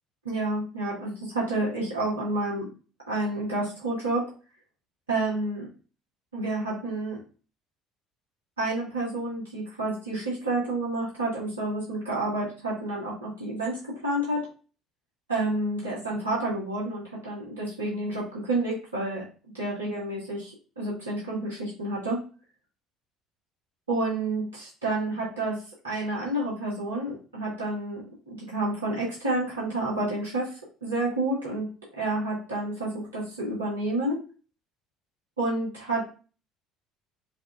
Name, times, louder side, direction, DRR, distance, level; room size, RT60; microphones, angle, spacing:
voice 1, 0.2-2.7 3.1-4.2 5.1-5.7 6.3-7.2 8.6-14.4 15.3-19.2 19.5-22.2 23.9-25.6 25.8-28.0 28.3-31.7 32.0-34.2 35.4-36.0, right 2 dB, 85° right, -7 dB, 1.8 m, -29 dB
6.0 x 2.8 x 2.4 m, 0.36 s
figure-of-eight pair, 60°, 0 cm